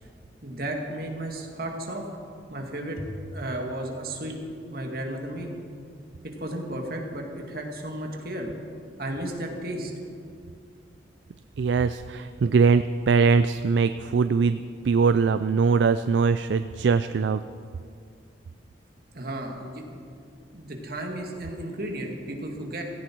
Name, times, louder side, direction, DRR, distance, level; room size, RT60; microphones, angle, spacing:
voice 1, 0.4-2.1 2.5-5.5 6.4-8.5 9.0-9.9 19.1-20.0 20.5-22.8, right 1 dB, 55° right, 1 dB, 2.2 m, -34 dB
voice 2, 11.6-17.4, right 5 dB, 75° right, 12 dB, 0.4 m, -22 dB
16.5 x 16.0 x 4.6 m, 2.3 s
head